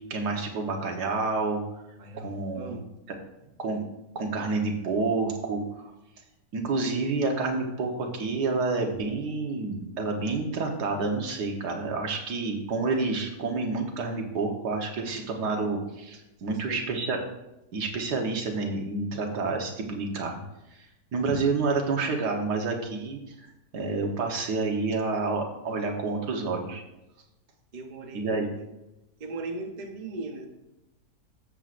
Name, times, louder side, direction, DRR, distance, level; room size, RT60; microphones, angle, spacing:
voice 1, 0.0-1.6 2.2-2.7 3.6-3.8 4.2-5.6 6.5-17.2 17.7-20.4 21.1-23.2 23.7-26.8 28.1-28.5, right 3 dB, 90° right, 2 dB, 1.8 m, -29 dB
voice 2, 2.0-2.9 16.5-16.8 27.7-28.7 29.2-30.5, right 2 dB, 35° right, 4 dB, 0.9 m, -38 dB
12.5 x 7.5 x 2.5 m, 0.94 s
omnidirectional pair, 1.7 m